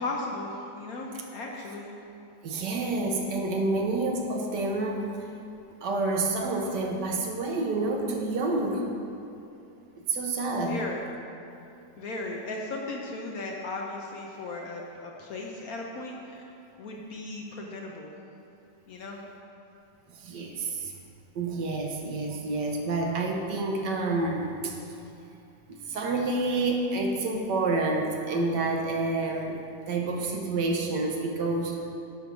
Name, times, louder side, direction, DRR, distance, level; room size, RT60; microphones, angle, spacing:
voice 1, 0.0-2.0 10.7-11.0 12.0-16.5 16.8-18.1 18.9-19.2, left 2 dB, 60° left, 0 dB, 1.1 m, -36 dB
voice 2, 2.4-5.3 5.8-8.8 10.1-10.8 20.1-20.9 21.3-24.8 25.7-29.6 29.9-31.9, right 2 dB, 70° right, 1 dB, 1.4 m, -28 dB
10.5 x 3.5 x 6.1 m, 2.7 s
omnidirectional pair, 2.0 m